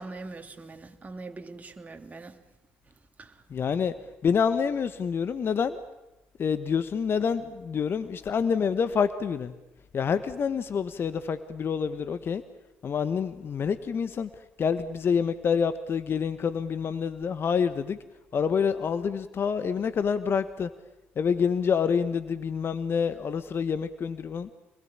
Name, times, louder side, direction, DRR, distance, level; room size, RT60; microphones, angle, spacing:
voice 1, 0.0-2.3 3.2-3.3, right 3 dB, 30° right, 5 dB, 3.0 m, -42 dB
voice 2, 3.5-3.9 4.2-5.8 6.4-9.5 9.9-12.4 12.8-14.3 14.6-18.0 18.3-20.7 21.2-24.5, left 6 dB, 45° left, 12 dB, 1.4 m, -27 dB
28.0 x 21.0 x 8.9 m, 1.0 s
hypercardioid pair, 55°, 5 cm